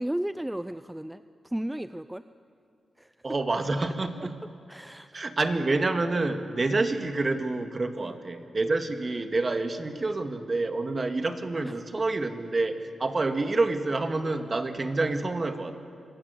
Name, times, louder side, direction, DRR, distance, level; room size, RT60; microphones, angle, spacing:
voice 1, 0.0-2.2 3.0-3.2 4.7-5.2 8.0-8.1 10.0-10.1 11.6-11.7, right 1 dB, 10° right, 12 dB, 0.6 m, -34 dB
voice 2, 3.2-4.3 5.1-15.8, right 3 dB, 40° right, 7 dB, 2.1 m, -28 dB
26.0 x 16.5 x 9.5 m, 2.6 s
cardioid pair, 55°, 0 cm